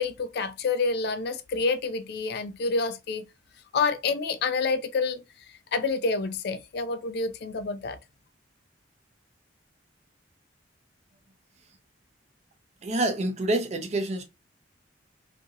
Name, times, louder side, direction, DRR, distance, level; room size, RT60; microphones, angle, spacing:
voice 1, 0.0-3.2 3.7-5.2 5.7-8.0, left 4 dB, 55° left, 0.3 m, -28 dB
voice 2, 12.8-14.2, right 2 dB, 35° right, 0.5 m, -27 dB
2.8 x 2.6 x 2.4 m
head